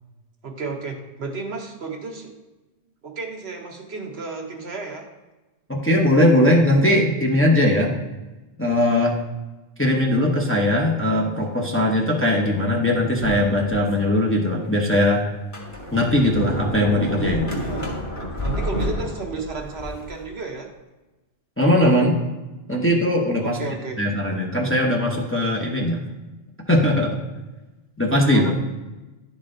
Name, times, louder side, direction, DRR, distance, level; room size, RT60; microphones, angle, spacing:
voice 1, 0.4-2.4 3.0-5.1 17.6-17.9 18.4-20.7 23.4-24.0 28.3-28.5, right 4 dB, 65° right, 3 dB, 1.2 m, -33 dB
voice 2, 5.7-7.9 8.6-9.2 9.8-15.2 15.9-17.5 21.6-22.2 22.7-23.6 24.0-26.0 26.7-27.2 28.0-28.5, left 1 dB, 15° left, -1 dB, 0.7 m, -19 dB
Sliding door, 13.2-14.1 14.6-14.7 15.3-20.2, equal, 30° left, 1.3 m, -29 dB
11.0 x 4.1 x 3.8 m, 1.1 s
omnidirectional pair, 1.2 m